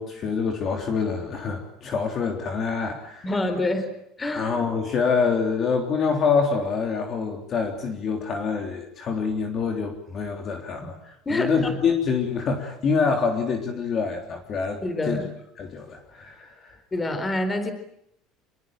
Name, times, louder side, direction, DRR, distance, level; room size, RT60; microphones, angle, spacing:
voice 1, 0.0-3.3 4.3-15.2 15.6-16.8, left 5 dB, 30° left, 3 dB, 3.5 m, -26 dB
voice 2, 3.2-3.9 4.2-4.5 11.3-11.7 14.8-15.2 16.9-17.7, left 1 dB, 15° left, 9 dB, 4.2 m, -26 dB
27.5 x 21.5 x 9.2 m, 0.74 s
cardioid pair, 175°, 0 cm